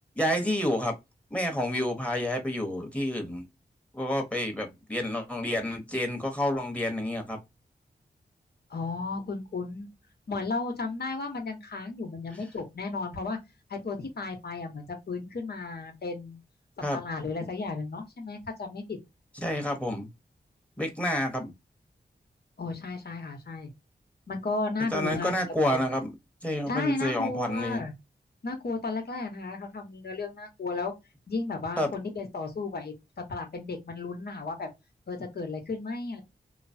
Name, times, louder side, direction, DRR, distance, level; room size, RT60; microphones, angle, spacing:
voice 1, 0.2-0.9 1.3-3.4 3.9-7.4 16.8-17.0 19.4-20.1 20.8-21.5 24.9-26.1 26.4-27.8 31.8-31.9, left 1 dB, 5° left, 1.1 m, -29 dB
voice 2, 8.7-9.9 10.3-13.4 13.7-16.4 16.9-19.0 22.6-23.7 24.3-25.3 25.7-25.8 26.7-27.9 28.4-30.9 31.3-32.9 33.3-34.7 35.1-36.2, left 3 dB, 65° left, 1.1 m, -34 dB
3.0 x 2.1 x 2.6 m
cardioid pair, 55°, 17 cm